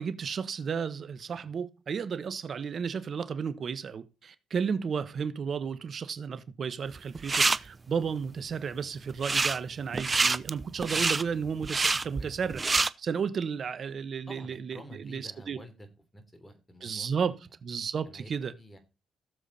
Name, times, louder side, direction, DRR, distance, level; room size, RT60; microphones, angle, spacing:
voice 1, 0.0-12.6 13.0-15.6 16.8-18.5, right 6 dB, 50° right, 1.2 m, -33 dB
sound 1, 7.0-7.6 9.1-9.6 9.9-12.9, right 3 dB, 25° right, 0.6 m, -26 dB
voice 2, 12.2-12.5 14.3-15.9 16.1-17.4 18.1-18.3 18.6-18.8, equal, 10° left, 3.4 m, -49 dB
16.5 x 7.2 x 4.2 m
cardioid pair, 90°, 0 cm